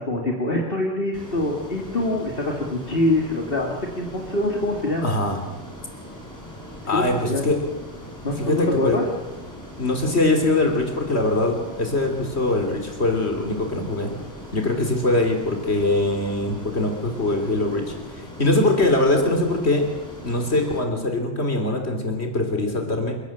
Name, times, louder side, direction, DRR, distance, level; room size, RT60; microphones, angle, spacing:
voice 1, 0.0-5.1 6.9-7.4 8.2-9.1, left 1 dB, 60° left, 0 dB, 2.9 m, -24 dB
Ocean, 1.1-20.8, equal, 15° left, 6.6 m, -40 dB
voice 2, 5.0-5.4 6.9-7.6 8.4-9.0 9.8-14.1 14.5-19.9 20.2-23.1, left 2 dB, 85° left, 4 dB, 3.6 m, -22 dB
29.0 x 17.0 x 7.4 m, 1.1 s
omnidirectional pair, 1.1 m